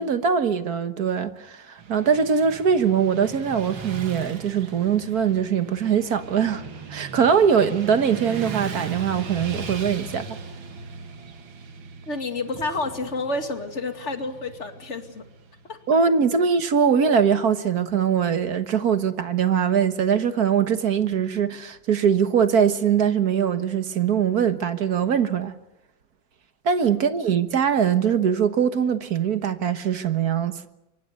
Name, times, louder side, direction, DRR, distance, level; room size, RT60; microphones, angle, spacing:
voice 1, 0.0-6.6 6.9-10.4 15.9-25.5 26.6-30.7, right 7 dB, 55° right, 1.7 m, -22 dB
Motorcycle / Traffic noise roadway noise, 1.8-15.9, right 4 dB, 80° right, 2.7 m, -38 dB
voice 2, 12.1-15.2 15.7-15.8 26.9-27.1, left 2 dB, 35° left, 2.6 m, -30 dB
25.0 x 23.0 x 8.1 m
omnidirectional pair, 2.2 m